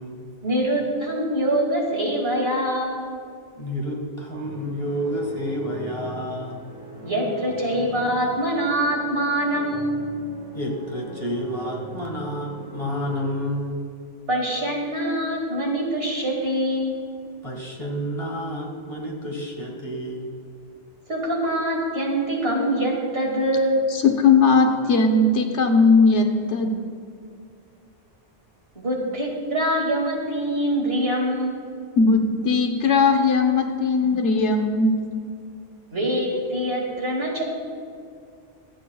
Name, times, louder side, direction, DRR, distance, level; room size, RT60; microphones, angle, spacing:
voice 1, 0.4-3.1 7.0-10.2 14.3-17.0 21.1-23.8 28.8-31.6 35.9-37.4, right 1 dB, 55° right, -1 dB, 2.4 m, -24 dB
voice 2, 3.5-6.7 10.5-13.8 17.4-20.3, equal, 30° left, -1 dB, 1.7 m, -30 dB
sound 1, 4.4-13.4, left 1 dB, 5° left, 2.8 m, -41 dB
voice 3, 23.9-26.7 32.0-34.9, left 4 dB, 70° left, 5 dB, 1.3 m, -18 dB
25.0 x 8.8 x 2.3 m, 2.3 s
omnidirectional pair, 1.2 m